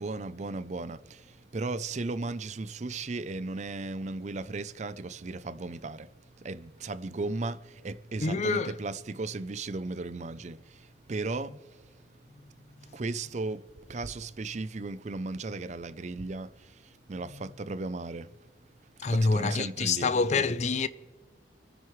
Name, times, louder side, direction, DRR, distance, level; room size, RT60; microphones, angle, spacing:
voice 1, 0.0-6.1 6.4-11.8 12.9-18.3 19.0-20.1, right 3 dB, 40° right, 0.5 m, -36 dB
voice 2, 8.2-8.7 19.0-20.9, left 4 dB, 40° left, 0.4 m, -26 dB
28.0 x 9.4 x 3.2 m
head